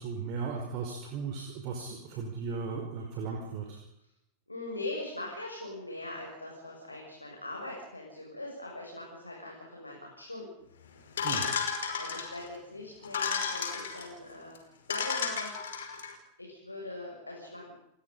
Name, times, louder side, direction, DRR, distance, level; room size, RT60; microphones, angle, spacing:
voice 1, 0.0-3.8 11.2-11.5, right 5 dB, 40° right, 2 dB, 5.0 m, -36 dB
voice 2, 4.5-10.5 12.0-14.6 14.9-15.6 16.4-17.8, left 2 dB, 85° left, -2 dB, 7.4 m, -41 dB
sound 1, 11.2-12.5 13.0-14.1 14.6-14.7 14.9-16.1, left 6 dB, 65° left, 5.2 m, -33 dB
30.0 x 20.5 x 5.6 m, 0.77 s
figure-of-eight pair, 90°, 0 cm